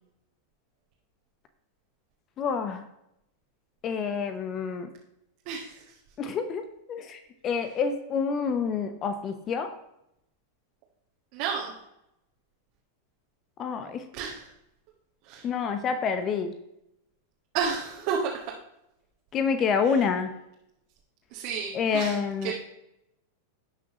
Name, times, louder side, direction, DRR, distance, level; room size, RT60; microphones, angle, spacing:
voice 1, 2.4-2.8 3.8-4.9 6.2-6.6 6.9-9.7 13.6-14.0 15.4-16.5 19.3-20.3 21.7-22.5, left 6 dB, 30° left, 8 dB, 0.8 m, -28 dB
voice 2, 5.4-5.8 11.3-11.7 14.1-14.5 15.3-15.4 17.5-18.2 21.3-22.5, right 7 dB, 45° right, -2 dB, 1.5 m, -31 dB
18.0 x 6.1 x 3.0 m, 0.83 s
figure-of-eight pair, 90°, 0 cm